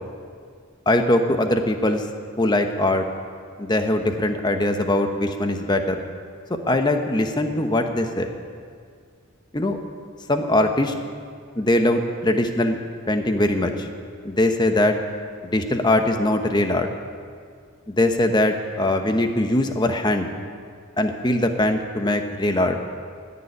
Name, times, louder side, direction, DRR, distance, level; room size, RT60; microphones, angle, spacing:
voice 1, 0.9-2.0 2.4-3.1 3.6-6.0 6.7-8.3 9.5-9.8 10.3-10.9 11.6-12.8 13.1-13.9 14.2-15.0 15.4-16.9 17.9-20.3 21.0-22.8, left 1 dB, 20° left, 6 dB, 0.9 m, -21 dB
17.0 x 7.0 x 9.8 m, 2.2 s
head